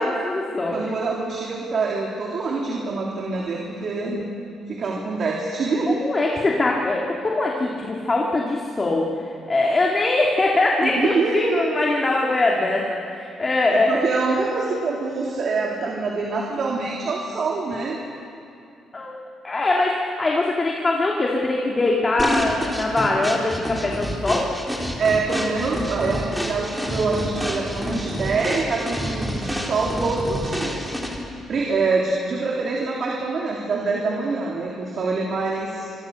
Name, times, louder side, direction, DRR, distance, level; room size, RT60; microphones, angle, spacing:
voice 1, 0.0-0.9 5.9-9.1 9.5-14.0 18.9-24.5, left 2 dB, 30° left, -2 dB, 2.9 m, -22 dB
voice 2, 0.7-4.3 4.7-6.3 10.8-11.7 13.7-18.0 25.0-30.9 31.5-35.9, right 3 dB, 55° right, -2 dB, 3.5 m, -25 dB
sound 1, 22.2-31.3, equal, ahead, 3.8 m, -28 dB
26.0 x 23.0 x 6.6 m, 2.5 s
cardioid pair, 90°, 0 cm